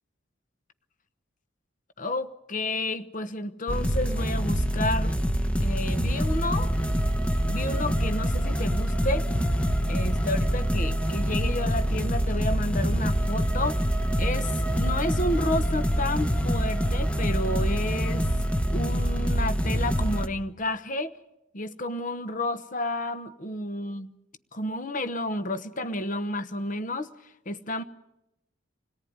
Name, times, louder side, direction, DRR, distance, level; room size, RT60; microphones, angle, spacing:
voice 1, 2.0-5.2 5.6-6.8 7.4-9.3 9.9-13.8 14.2-18.3 18.7-21.1 21.5-24.1 24.5-27.8, left 1 dB, 40° left, 1.0 m, -31 dB
sound 1, 3.7-20.3, equal, 5° left, 1.1 m, -25 dB
27.0 x 18.0 x 9.5 m
head